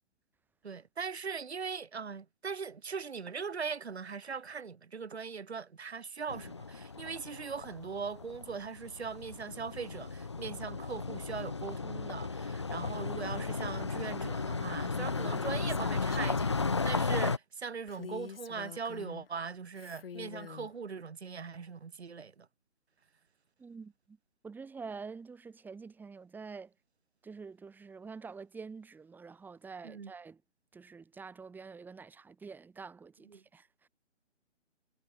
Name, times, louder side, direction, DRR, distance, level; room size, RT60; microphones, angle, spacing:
voice 1, 0.6-22.5 29.8-30.1 33.3-33.4, right 5 dB, 60° right, 6.3 m, -40 dB
sound 1, 6.3-17.4, left 4 dB, 25° left, 0.5 m, -35 dB
Female speech woman speaking, 14.9-16.9 17.9-19.3 19.7-20.7, left 7 dB, 50° left, 4.8 m, -45 dB
voice 2, 23.6-24.2 24.4-26.7 27.2-30.4 30.7-33.9, right 5 dB, 5° right, 6.0 m, -47 dB
figure-of-eight pair, 150°, 37 cm